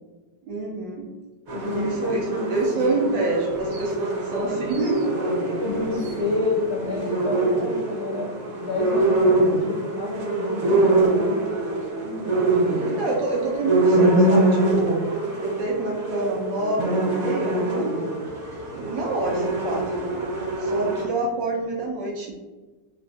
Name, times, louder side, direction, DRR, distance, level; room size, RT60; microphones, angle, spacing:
voice 1, 0.5-1.1 1.8-2.2 2.5-5.6 6.1-6.2 12.0-15.0 15.4-18.1 18.7-20.0 20.6-22.4, right 2 dB, 80° right, -1 dB, 1.2 m, -27 dB
voice 2, 1.5-3.2 5.2-8.3 8.6-11.3 12.7-12.9, left 3 dB, 60° left, -6 dB, 1.2 m, -30 dB
sound 1, 1.5-21.0, right 2 dB, 50° right, 0.9 m, -24 dB
3.3 x 2.3 x 2.5 m, 1.2 s
omnidirectional pair, 1.9 m